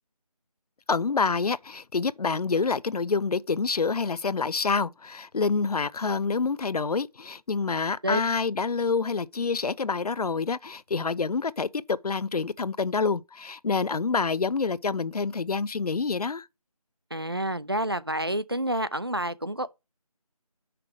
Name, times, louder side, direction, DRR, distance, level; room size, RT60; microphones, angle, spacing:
voice 1, 0.9-16.5, left 4 dB, 80° left, 0.6 m, -27 dB
voice 2, 17.1-19.7, right 1 dB, 40° right, 0.4 m, -28 dB
6.3 x 5.9 x 4.9 m
figure-of-eight pair, 180°, 19 cm